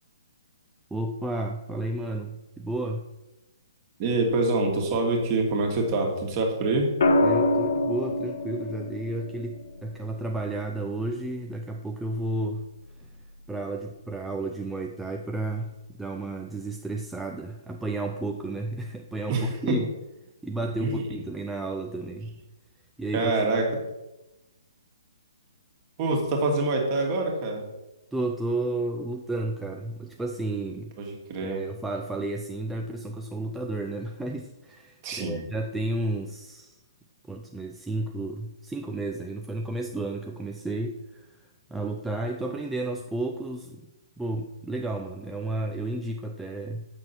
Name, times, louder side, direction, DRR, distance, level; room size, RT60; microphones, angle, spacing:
voice 1, 0.9-3.1 7.2-12.7 13.5-19.9 20.4-22.4 23.0-23.5 28.1-31.0 31.4-36.8 37.3-41.3 41.7-43.8 44.2-46.9, right 2 dB, 5° right, 2 dB, 0.4 m, -32 dB
voice 2, 4.0-6.9 19.3-19.5 20.8-21.0 23.1-23.6 26.0-27.6 31.0-31.6 35.0-35.4, right 2 dB, 35° right, 1 dB, 1.7 m, -25 dB
sound 1, 7.0-11.1 12.8-13.2, left 2 dB, 55° left, 0.9 m, -26 dB
7.5 x 6.2 x 4.3 m, 1.0 s
figure-of-eight pair, 130°, 2 cm